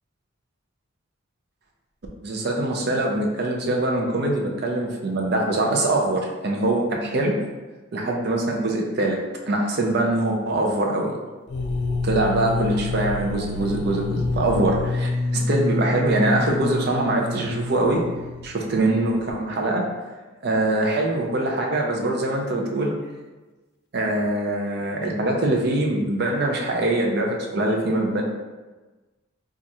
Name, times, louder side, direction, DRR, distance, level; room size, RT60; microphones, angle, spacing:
voice 1, 2.2-7.4 7.9-11.1 12.0-18.0 18.4-19.9 20.4-22.9 23.9-28.2, right 2 dB, 50° right, 0 dB, 0.5 m, -23 dB
sound 1, 11.5-19.2, left 2 dB, 55° left, 0.4 m, -28 dB
4.5 x 2.4 x 2.7 m, 1.2 s
head